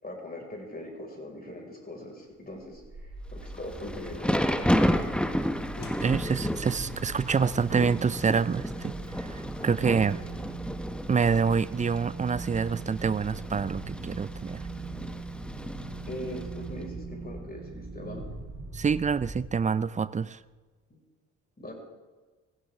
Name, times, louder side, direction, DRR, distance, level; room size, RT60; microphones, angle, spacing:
voice 1, 0.0-5.1 16.1-18.2 20.9-21.0 21.6-21.7, left 1 dB, 25° left, 1 dB, 5.7 m, -41 dB
sound 1, 2.6-20.0, right 3 dB, 50° right, 3.4 m, -40 dB
Thunder / Rain, 3.5-16.6, equal, 5° left, 1.2 m, -32 dB
sound 2, 5.8-10.8, left 5 dB, 60° left, 2.1 m, -51 dB
voice 2, 6.0-10.2 11.1-14.6 18.7-20.4, right 5 dB, 20° right, 18 dB, 0.5 m, -27 dB
16.0 x 16.0 x 3.7 m, 1.3 s
hypercardioid pair, 45°, 37 cm